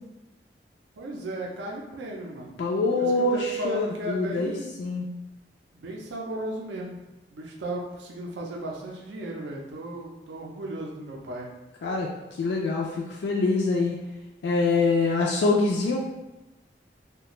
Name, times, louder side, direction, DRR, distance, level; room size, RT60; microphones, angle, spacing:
voice 1, 1.0-2.6 2.9-4.7 5.7-7.0 7.3-11.5, right 1 dB, 80° right, -2 dB, 0.4 m, -35 dB
voice 2, 2.6-4.5 4.8-5.1 11.8-12.1 12.4-14.0 14.4-16.0, left 3 dB, 70° left, -1 dB, 0.3 m, -24 dB
2.4 x 2.2 x 2.9 m, 1.0 s
head